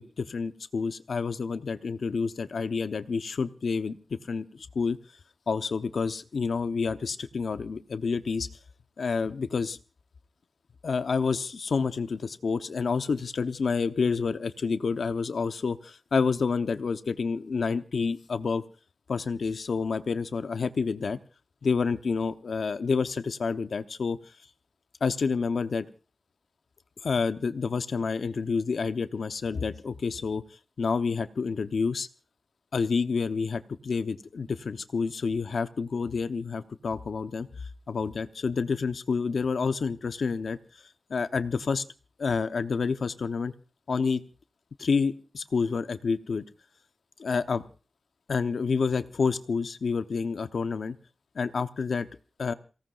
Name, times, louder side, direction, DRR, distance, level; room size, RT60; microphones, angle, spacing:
voice 1, 0.0-5.0 5.5-8.5 9.0-9.8 10.8-18.6 19.1-21.2 21.6-24.2 25.0-25.9 27.0-30.4 30.8-32.1 32.7-40.6 41.1-41.8 42.2-43.5 43.9-44.2 44.8-46.4 47.2-47.6 48.3-51.0 51.3-52.1 52.4-52.5, left 5 dB, 80° left, 9 dB, 1.0 m, -29 dB
29.0 x 17.5 x 2.5 m, 0.35 s
wide cardioid pair, 105°, 0 cm